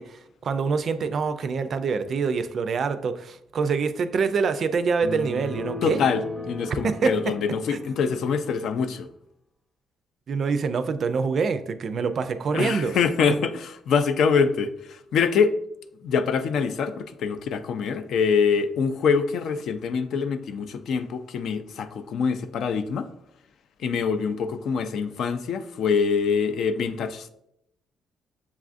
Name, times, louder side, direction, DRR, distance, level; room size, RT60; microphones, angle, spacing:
voice 1, 0.0-6.0 6.8-7.3 7.7-7.8 10.3-13.0, right 5 dB, 55° right, 0.3 m, -25 dB
sound 1, 5.0-8.6, left 2 dB, 5° left, 0.6 m, -37 dB
voice 2, 5.8-9.1 12.5-15.6 16.0-23.1 23.8-27.3, left 6 dB, 70° left, 0.3 m, -24 dB
7.1 x 2.4 x 2.5 m
cardioid pair, 90°, 0 cm